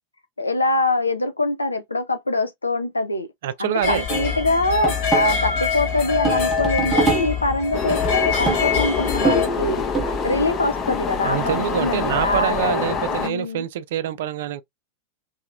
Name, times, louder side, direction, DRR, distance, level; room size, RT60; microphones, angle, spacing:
voice 1, 0.4-3.3 3.6-9.8 10.2-13.6, left 2 dB, 80° left, 0.5 m, -24 dB
voice 2, 3.4-4.0 11.2-14.6, right 10 dB, 55° right, 0.3 m, -25 dB
sound 1, 3.8-9.5, left 6 dB, 45° left, 1.4 m, -24 dB
sound 2, 4.1-10.4, right 4 dB, 20° right, 0.9 m, -26 dB
sound 3, 7.7-13.3, left 5 dB, 30° left, 0.6 m, -26 dB
2.8 x 2.6 x 2.4 m
figure-of-eight pair, 90°, 0 cm